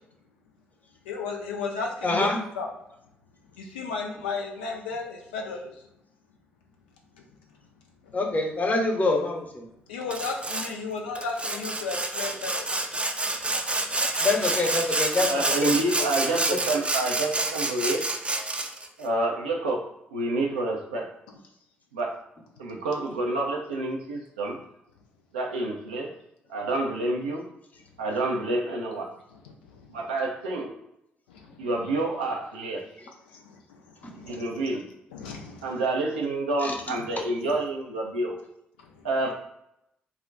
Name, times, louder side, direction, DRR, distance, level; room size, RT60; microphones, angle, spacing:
voice 1, 1.0-2.7 3.6-5.7 7.1-7.2 8.0-8.1 9.9-12.7 29.3-30.0 31.3-31.7 33.3-34.5 35.1-35.8 38.8-39.1, left 4 dB, 80° left, 1 dB, 0.4 m, -35 dB
voice 2, 2.0-2.4 8.1-9.7 14.2-15.3 15.6-15.7 16.5-16.6 36.6-36.7, left 2 dB, 30° left, 1 dB, 0.8 m, -25 dB
Sawing, 10.1-10.7 11.2-18.9, right 2 dB, 20° right, 0.4 m, -28 dB
voice 3, 15.3-18.0 19.0-21.1 21.9-22.2 22.6-24.6 25.3-26.1 26.5-27.5 28.0-29.1 29.9-30.7 31.6-32.8 34.1-34.9 35.6-38.4 39.0-39.4, right 2 dB, 85° right, 0 dB, 0.5 m, -28 dB
2.4 x 2.1 x 3.7 m, 0.80 s
figure-of-eight pair, 40°, 5 cm